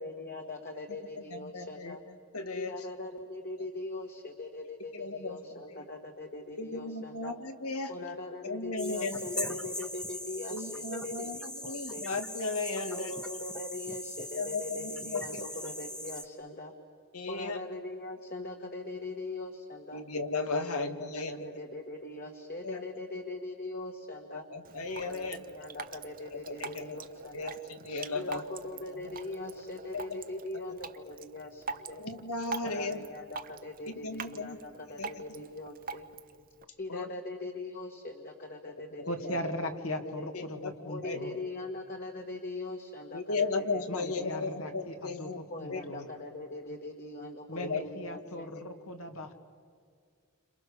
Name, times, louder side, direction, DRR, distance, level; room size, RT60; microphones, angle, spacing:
voice 1, 0.0-2.0 2.5-7.3 7.9-12.1 12.8-16.7 17.3-20.0 20.6-24.4 25.0-27.6 28.1-32.0 32.6-36.1 36.8-39.8 40.2-40.3 40.9-43.6 44.0-44.7 45.5-48.5, left 2 dB, 45° left, 2 dB, 1.8 m, -41 dB
voice 2, 1.3-2.0 2.3-2.8 4.9-5.4 5.7-5.8 6.6-7.9 8.4-9.5 10.5-13.1 14.4-15.5 17.1-17.6 19.9-21.5 22.6-22.8 24.3-25.4 26.3-27.0 27.3-28.4 29.9-30.2 32.0-33.0 33.9-34.6 35.0-35.2 36.9-37.1 39.0-39.4 40.3-41.2 43.1-45.4 45.7-45.8 47.6-47.8 48.5-48.6, left 3 dB, 90° left, 7 dB, 2.0 m, -36 dB
sound 1, 8.8-16.2, equal, 5° left, 1.1 m, -40 dB
Drip, 24.6-36.6, right 5 dB, 40° right, 0.8 m, -44 dB
voice 3, 39.1-41.3 43.9-46.1 47.5-49.3, left 1 dB, 70° left, 6 dB, 2.1 m, -38 dB
30.0 x 27.0 x 7.0 m, 2.1 s
head